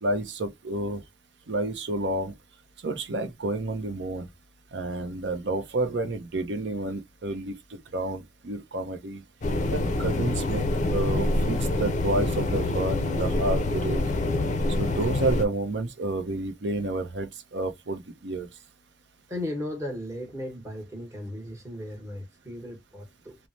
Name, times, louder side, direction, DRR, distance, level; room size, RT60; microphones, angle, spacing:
voice 1, 0.0-1.0 1.5-2.3 2.8-4.3 4.7-9.2 9.7-10.6 10.9-14.0 14.8-18.5, right 2 dB, 70° right, 0.6 m, -30 dB
sound 1, 9.4-15.4, left 2 dB, 40° left, 0.4 m, -26 dB
voice 2, 19.3-23.4, left 1 dB, 15° right, 1.0 m, -36 dB
3.1 x 2.1 x 2.6 m
head